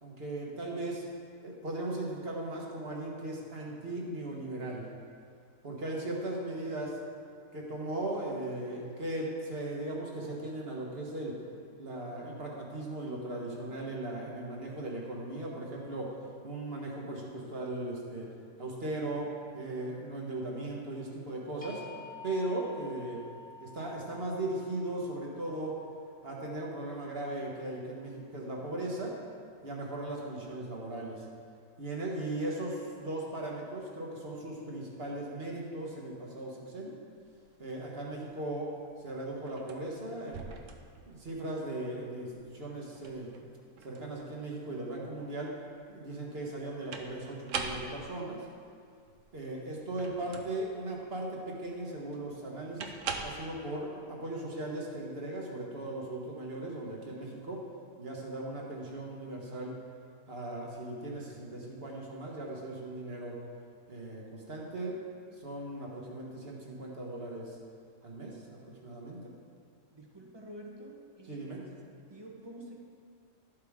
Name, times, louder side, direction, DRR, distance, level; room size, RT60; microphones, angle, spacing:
voice 1, 0.0-1.0 1.4-4.9 5.6-7.0 7.5-11.4 11.8-16.1 16.4-18.3 18.6-21.8 22.2-23.2 23.6-25.8 26.2-29.2 29.6-31.2 31.8-36.9 37.6-38.7 39.0-40.5 41.0-43.3 43.8-45.5 45.9-48.4 49.3-52.9 53.2-57.6 58.0-59.8 60.3-63.4 63.9-65.0 65.3-67.6 68.0-69.3 71.3-71.6, right 1 dB, 45° right, -2 dB, 1.6 m, -38 dB
sound 1, 21.6-27.6, left 3 dB, 5° left, 1.2 m, -50 dB
sound 2, 37.1-53.3, right 5 dB, 65° right, 1.1 m, -43 dB
voice 2, 69.9-71.7 72.0-72.8, right 1 dB, 20° right, -1 dB, 1.1 m, -48 dB
12.5 x 8.0 x 3.6 m, 2.2 s
omnidirectional pair, 1.5 m